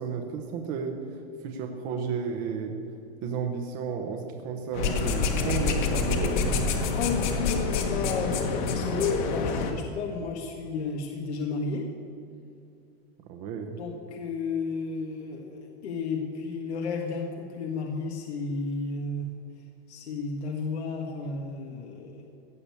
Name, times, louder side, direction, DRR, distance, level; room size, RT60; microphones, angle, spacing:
voice 1, 0.0-2.8 3.2-6.6 13.3-13.7, right 6 dB, 25° right, 3 dB, 0.8 m, -33 dB
sound 1, 4.7-9.7, left 4 dB, 45° left, 1.6 m, -27 dB
voice 2, 6.9-11.9 13.7-19.3 19.9-22.3, left 4 dB, 90° left, 1 dB, 1.8 m, -32 dB
16.5 x 6.7 x 8.3 m, 2.4 s
supercardioid pair, 170°, 32 cm